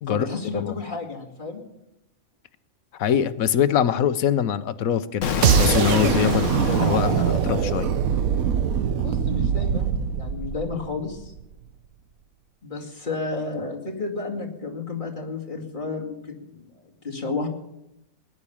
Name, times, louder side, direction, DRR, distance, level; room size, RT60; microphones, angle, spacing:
voice 1, 0.1-1.6 9.0-9.9 10.2-11.3 12.6-17.5, left 3 dB, 35° left, -1 dB, 2.5 m, -32 dB
voice 2, 3.0-7.9, left 9 dB, 90° left, 13 dB, 1.2 m, -23 dB
Explosion, 5.2-8.1, left 6 dB, 65° left, 1.3 m, -27 dB
sound 1, 5.4-11.4, right 8 dB, 90° right, 1.3 m, -23 dB
18.0 x 11.0 x 7.1 m, 0.87 s
omnidirectional pair, 1.4 m